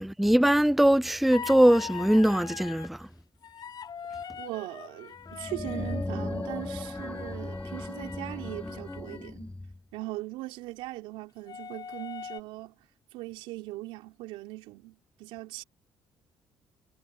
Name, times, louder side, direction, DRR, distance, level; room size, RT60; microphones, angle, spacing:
voice 1, 0.0-2.9, right 1 dB, ahead, 0.4 m, -21 dB
sound 1, 1.3-2.9 3.4-9.3 11.5-12.4, left 7 dB, 50° left, 3.5 m, -42 dB
voice 2, 4.4-9.5 9.9-12.8 13.1-15.6, right 18 dB, 85° right, 3.9 m, -40 dB
sound 2, 5.2-9.8, left 2 dB, 15° left, 4.6 m, -37 dB
supercardioid pair, 70°, 9 cm